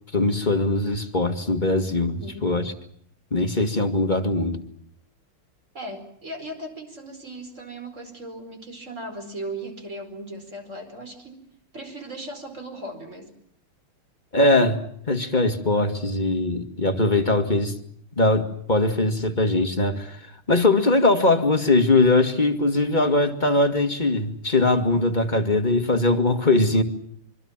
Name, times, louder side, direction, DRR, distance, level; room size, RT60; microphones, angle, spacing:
voice 1, 0.1-2.7 3.3-4.6 14.3-14.8 15.1-17.7 18.2-20.2 20.5-26.8, left 2 dB, 20° left, 5 dB, 1.9 m, -21 dB
voice 2, 2.0-2.5 5.7-11.4 11.7-13.3, right 1 dB, 35° right, 6 dB, 5.1 m, -37 dB
25.0 x 25.0 x 7.4 m, 0.65 s
omnidirectional pair, 2.4 m